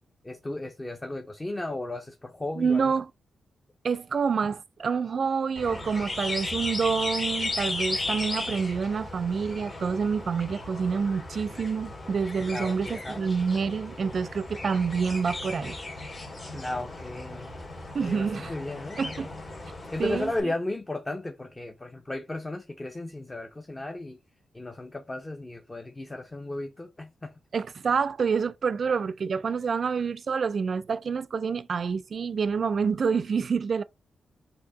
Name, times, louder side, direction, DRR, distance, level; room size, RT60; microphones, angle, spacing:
voice 1, 0.2-2.9 12.5-13.2 16.5-17.5 18.0-19.3 19.9-24.2 24.5-27.3, left 2 dB, 20° left, 0.6 m, -35 dB
voice 2, 2.6-3.1 3.8-15.8 17.9-18.5 19.0-19.3 20.0-20.5 27.5-33.8, right 5 dB, 60° right, 0.3 m, -27 dB
sound 1, 5.6-20.4, left 2 dB, 45° left, 1.9 m, -36 dB
4.4 x 2.7 x 3.9 m
cardioid pair, 65°, 0 cm